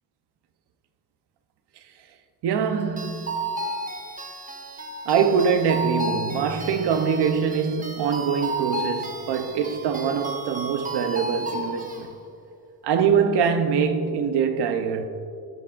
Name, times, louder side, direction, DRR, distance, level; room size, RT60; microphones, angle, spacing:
voice 1, 2.4-3.5 5.1-12.1 12.8-15.0, right 6 dB, 75° right, 0.9 m, -23 dB
sound 1, 3.0-12.0, right 2 dB, 20° right, 1.1 m, -33 dB
15.5 x 13.0 x 2.6 m
cardioid pair, 120°, 41 cm